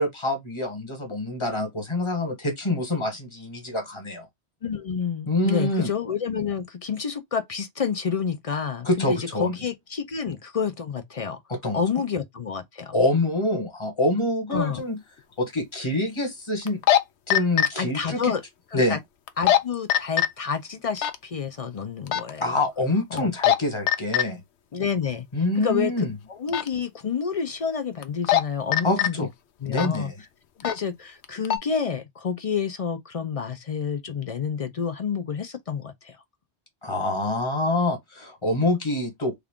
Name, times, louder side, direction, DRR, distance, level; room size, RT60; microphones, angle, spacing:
voice 1, 0.0-4.3 5.3-5.9 8.8-9.6 11.5-11.8 12.9-15.0 15.4-16.8 17.3-18.3 18.7-19.0 22.4-24.4 25.3-26.1 28.8-29.3 29.7-30.1 36.8-39.3, left 2 dB, 25° left, 1.3 m, -26 dB
voice 2, 4.6-11.4 11.7-12.9 14.5-14.8 17.8-18.4 18.7-19.0 19.4-22.5 23.1-23.3 24.7-25.3 25.6-29.3 29.6-30.1 30.6-36.2, left 6 dB, 50° left, 0.4 m, -29 dB
sound 1, 14.6-14.7 16.7-17.0 17.3-17.7 19.3-19.6 19.9-20.3 21.0-21.1 22.1-22.3 23.2-23.6 23.9-24.2 26.5-26.7 28.0-28.4 28.7-29.1 29.7-30.0 30.6-30.8 31.2-31.6, left 11 dB, 80° left, 0.8 m, -20 dB
3.4 x 2.4 x 3.5 m
omnidirectional pair, 1.1 m